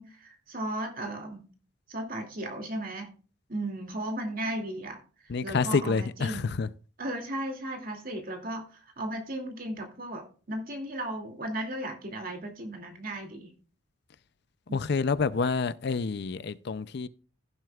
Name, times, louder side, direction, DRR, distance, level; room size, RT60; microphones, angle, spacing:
voice 1, 0.0-1.4 1.9-3.1 3.5-6.6 7.0-13.5 14.7-14.8, right 1 dB, 45° right, 2.5 m, -36 dB
voice 2, 5.3-6.7 14.7-17.1, left 4 dB, 55° left, 0.5 m, -28 dB
16.0 x 7.7 x 2.4 m
head